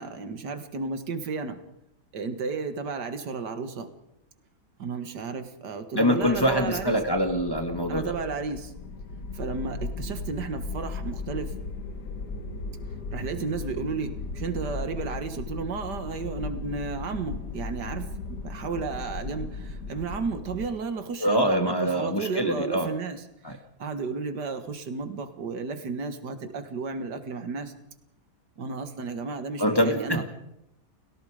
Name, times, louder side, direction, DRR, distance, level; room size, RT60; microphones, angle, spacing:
voice 1, 0.0-1.6 2.1-3.9 4.8-7.0 7.9-8.7 9.3-11.5 13.1-27.7 28.6-30.2, right 4 dB, 85° right, 9 dB, 2.2 m, -33 dB
voice 2, 5.9-8.1 21.2-22.9 23.4-23.6 29.6-30.2, equal, 15° left, 4 dB, 2.0 m, -24 dB
sound 1, 6.2-20.7, left 3 dB, 80° left, 2.3 m, -37 dB
30.0 x 17.5 x 5.1 m, 0.83 s
omnidirectional pair, 1.8 m